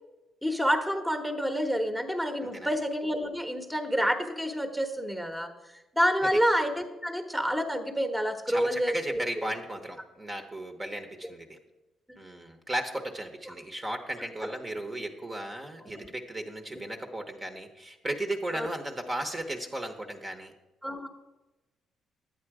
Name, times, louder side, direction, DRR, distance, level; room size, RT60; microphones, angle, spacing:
voice 1, 0.4-5.5 5.9-9.5 13.5-13.6 14.2-14.5 15.8-16.1 18.5-18.7 20.8-21.1, equal, 5° right, 6 dB, 1.1 m, -28 dB
voice 2, 8.5-11.6 12.2-20.5, right 1 dB, 25° right, 5 dB, 1.1 m, -35 dB
11.0 x 8.9 x 4.8 m, 1.1 s
cardioid pair, 90°, 0 cm